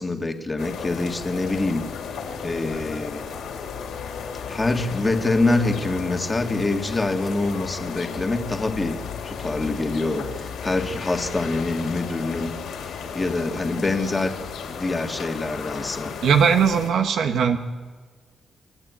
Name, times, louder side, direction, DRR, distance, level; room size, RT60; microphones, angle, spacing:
voice 1, 0.0-1.8 2.4-3.3 4.5-12.5 13.1-14.3 14.6-16.1, left 2 dB, 15° left, 4 dB, 1.9 m, -25 dB
sound 1, 0.6-16.9, left 6 dB, 90° left, 3.8 m, -34 dB
voice 2, 16.2-17.6, right 7 dB, 75° right, 6 dB, 1.6 m, -19 dB
28.5 x 12.0 x 9.4 m, 1.5 s
wide cardioid pair, 160°, 0 cm